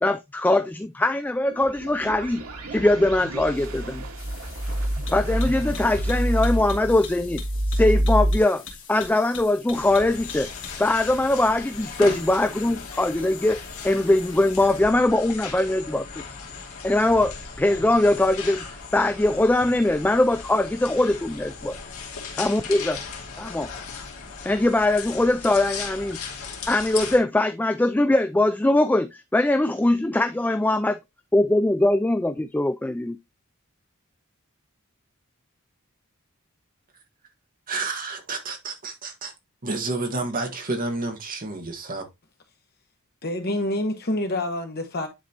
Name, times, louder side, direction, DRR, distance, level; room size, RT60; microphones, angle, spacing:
voice 1, 0.0-2.4 2.7-4.0 5.1-7.4 7.7-8.6 8.9-10.5 10.8-13.6 13.8-16.2 16.8-18.6 18.9-21.8 22.3-23.0 23.4-23.7 24.4-26.2 26.7-30.9 31.3-33.2, left 2 dB, 10° left, 0.3 m, -21 dB
sound 1, 1.5-8.4, right 1 dB, 85° right, 1.7 m, -27 dB
sound 2, 4.2-15.0, left 5 dB, 65° left, 2.4 m, -43 dB
sound 3, 9.7-27.2, left 5 dB, 90° left, 2.1 m, -37 dB
voice 2, 37.7-39.3 39.6-42.1, right 3 dB, 40° right, 1.6 m, -30 dB
voice 3, 43.2-45.1, left 1 dB, 50° left, 1.5 m, -27 dB
10.0 x 4.1 x 2.9 m
head